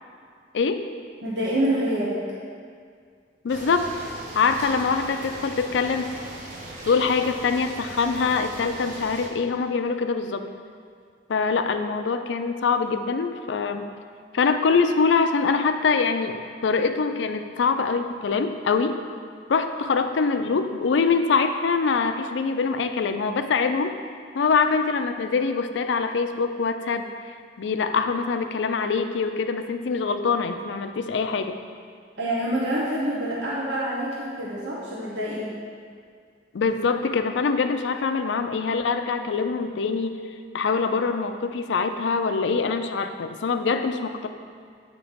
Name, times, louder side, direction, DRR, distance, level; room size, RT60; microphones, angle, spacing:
voice 1, 0.5-0.9 3.4-3.9 4.3-6.1 6.9-10.5 11.3-13.9 14.3-19.0 19.5-23.9 24.3-27.0 27.6-31.6 36.5-40.2 40.5-44.3, left 5 dB, 85° left, 8 dB, 0.4 m, -24 dB
voice 2, 1.2-2.2 32.2-35.5, right 1 dB, 85° right, -6 dB, 1.0 m, -26 dB
sound 1, 3.5-9.3, right 1 dB, 45° right, 1.0 m, -39 dB
8.3 x 2.9 x 5.1 m, 2.2 s
head